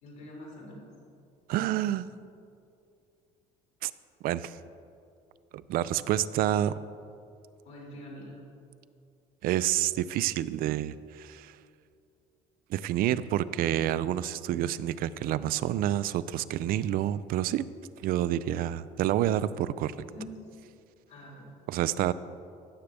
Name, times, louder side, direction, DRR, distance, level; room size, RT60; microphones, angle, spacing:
voice 1, 0.0-0.8 7.6-8.4 19.9-20.3 21.1-21.5, left 1 dB, 75° left, -3 dB, 2.7 m, -45 dB
voice 2, 1.5-2.1 3.8-3.9 4.2-4.6 5.5-6.8 9.4-11.6 12.7-17.7 18.0-19.9 21.7-22.1, right 12 dB, 60° right, 16 dB, 0.4 m, -28 dB
15.5 x 6.8 x 3.4 m, 2.5 s
supercardioid pair, 80°, 17 cm